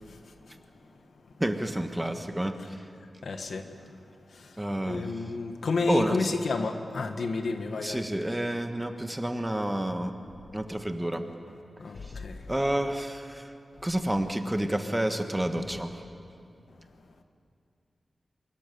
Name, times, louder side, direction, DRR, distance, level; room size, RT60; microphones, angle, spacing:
voice 1, 1.4-2.5 4.6-5.0 5.9-6.2 7.8-10.1 10.5-11.2 12.5-13.4 13.8-15.9, right 1 dB, 10° right, 6 dB, 1.3 m, -29 dB
voice 2, 3.2-3.6 4.4-4.5 4.9-8.1 11.8-12.4, left 3 dB, 75° left, 6 dB, 1.4 m, -30 dB
24.0 x 13.5 x 9.2 m, 2.5 s
wide cardioid pair, 90°, 0 cm